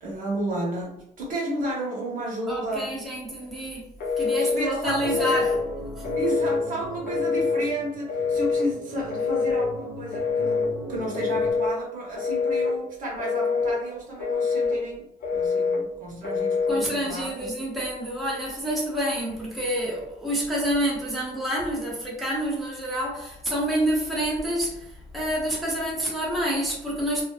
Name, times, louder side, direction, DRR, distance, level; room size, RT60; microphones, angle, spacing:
voice 1, 0.0-0.9 1.2-2.9 3.4-3.5 4.4-5.4 6.1-17.5, right 1 dB, 50° right, 1.0 m, -32 dB
voice 2, 2.5-3.9 4.2-5.6 6.0-6.2 16.7-27.2, equal, ahead, 0.7 m, -28 dB
Telephone, 4.0-4.6 5.0-5.6 6.0-6.6 7.1-7.6 8.1-8.7 9.1-9.7 10.1-10.7 11.1-11.7 12.2-12.7 13.2-13.8 14.2-14.8 15.2-15.8 16.2-16.8, left 4 dB, 65° left, 0.7 m, -25 dB
sound 1, 4.8-11.5, left 1 dB, 25° left, 1.0 m, -39 dB
2.4 x 2.2 x 2.3 m
cardioid pair, 110°, 17 cm